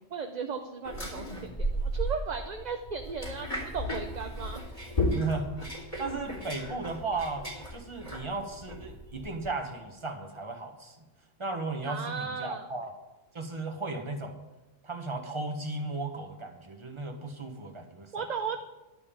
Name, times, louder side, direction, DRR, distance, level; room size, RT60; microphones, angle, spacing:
voice 1, 0.0-4.6 11.8-12.7 18.1-18.6, right 5 dB, 45° right, 5 dB, 0.7 m, -36 dB
Sitting On Office Chair, 0.8-9.5, equal, 35° left, 3.2 m, -35 dB
voice 2, 5.1-5.5 6.0-11.0 11.4-12.9 13.3-14.4 14.8-18.1, right 3 dB, 30° right, 4 dB, 1.3 m, -35 dB
12.0 x 5.5 x 8.6 m, 1.1 s
omnidirectional pair, 1.1 m